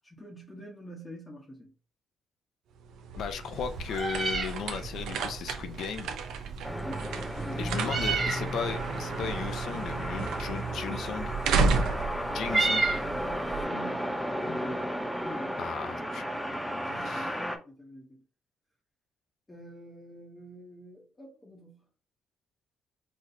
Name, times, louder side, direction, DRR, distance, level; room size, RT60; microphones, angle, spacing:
voice 1, 0.0-1.7 6.8-7.0 7.4-8.1 12.5-13.0 13.4-14.8 15.1-15.6 16.7-18.2 19.5-21.9, equal, 20° left, 0.9 m, -46 dB
sound 1, 2.7-13.5, right 4 dB, 85° right, 0.5 m, -33 dB
voice 2, 3.2-6.1 7.6-11.4 12.3-12.8 15.6-16.2 17.0-17.4, left 7 dB, 70° left, 0.5 m, -36 dB
Meow, 3.5-13.6, right 3 dB, 40° right, 1.1 m, -34 dB
sound 2, 6.6-17.6, equal, ahead, 0.6 m, -34 dB
4.0 x 3.0 x 2.6 m
cardioid pair, 90°, 0 cm